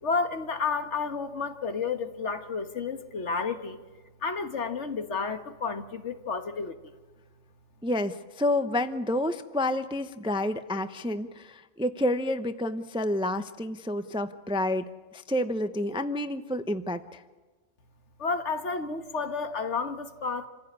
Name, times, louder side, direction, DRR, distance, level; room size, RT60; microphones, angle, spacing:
voice 1, 0.0-3.8 4.2-6.8 18.2-20.5, left 4 dB, 65° left, 8 dB, 1.7 m, -31 dB
voice 2, 7.8-17.2, left 1 dB, 5° right, 10 dB, 0.5 m, -29 dB
27.0 x 16.0 x 9.6 m, 1.4 s
omnidirectional pair, 1.3 m